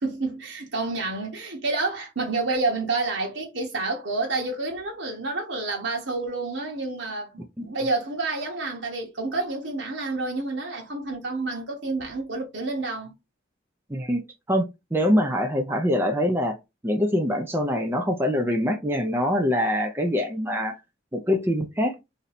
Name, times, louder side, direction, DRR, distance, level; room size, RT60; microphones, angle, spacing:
voice 1, 0.0-13.1, right 3 dB, 65° right, 1.1 m, -29 dB
voice 2, 13.9-14.2 14.5-16.6 16.8-20.8 21.1-21.9, equal, 10° right, 0.5 m, -24 dB
3.1 x 2.7 x 4.1 m
head